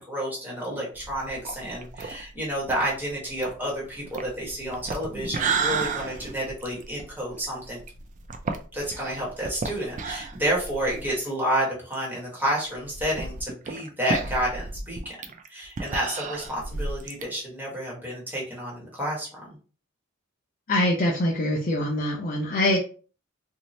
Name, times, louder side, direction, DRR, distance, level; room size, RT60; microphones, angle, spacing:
voice 1, 0.0-7.8 8.7-15.2 15.5-19.6, equal, 10° right, -4 dB, 1.0 m, -30 dB
sound 1, 0.9-11.2 11.5-11.6 11.9-12.0 12.7-17.2, right 4 dB, 35° right, 0.3 m, -33 dB
voice 2, 20.7-22.8, left 1 dB, 40° left, -1 dB, 0.5 m, -24 dB
2.6 x 2.0 x 3.0 m, 0.38 s
head